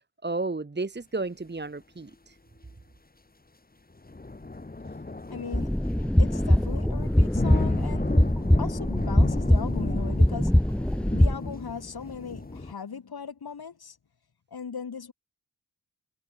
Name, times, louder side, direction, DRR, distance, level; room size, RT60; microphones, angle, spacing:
voice 1, 0.2-2.3, right 3 dB, 25° right, 1.5 m, -32 dB
sound 1, 4.0-12.7, left 2 dB, 20° left, 1.7 m, -34 dB
voice 2, 5.3-5.8 6.2-8.1 8.6-10.6 11.1-14.0 14.5-15.1, left 6 dB, 65° left, 2.7 m, -38 dB
sound 2, 5.5-11.3, left 1 dB, 5° left, 0.4 m, -22 dB
cardioid pair, 50°, 41 cm